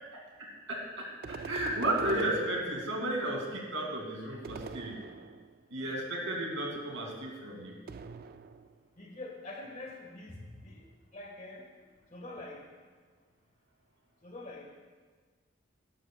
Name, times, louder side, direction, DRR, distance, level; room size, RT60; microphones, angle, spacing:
voice 1, 0.7-5.0 5.7-7.7, right 1 dB, 85° right, -1 dB, 2.4 m, -33 dB
sound 1, 1.2-3.2 4.4-5.6 7.9-8.9, right 4 dB, 50° right, 0.3 m, -44 dB
voice 2, 5.7-6.1 9.0-11.7 12.1-12.6 14.2-14.7, left 2 dB, 40° left, 1 dB, 1.5 m, -45 dB
13.0 x 10.5 x 2.3 m, 1.5 s
head